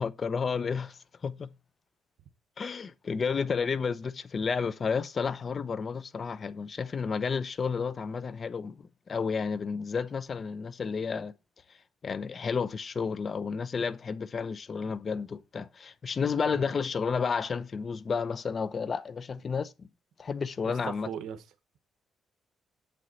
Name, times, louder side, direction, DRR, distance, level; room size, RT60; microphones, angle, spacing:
voice 1, 0.0-1.5 2.6-11.3 12.0-19.9 20.2-21.1, left 5 dB, 40° left, 0.8 m, -31 dB
voice 2, 20.6-21.4, right 8 dB, 75° right, 1.1 m, -39 dB
7.8 x 7.8 x 4.2 m
cardioid pair, 90°, 0 cm